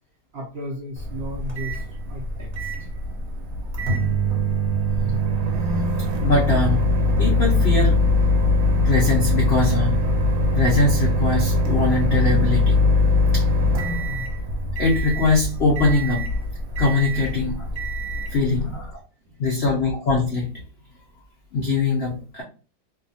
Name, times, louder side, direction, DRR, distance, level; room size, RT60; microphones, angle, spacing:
voice 1, 0.3-2.9 18.2-18.3 19.3-19.4, equal, 85° right, -2 dB, 0.5 m, -35 dB
Microwave oven, 1.0-18.9, left 1 dB, 65° right, 0.9 m, -22 dB
voice 2, 6.2-6.9 7.2-8.0 8.8-10.0 10.6-12.8 13.3-13.5 14.8-16.3 16.8-17.7 18.3-19.0 19.4-20.6 21.5-22.4, left 3 dB, 85° left, -2 dB, 0.5 m, -22 dB
2.7 x 2.3 x 2.6 m, 0.37 s
omnidirectional pair, 1.9 m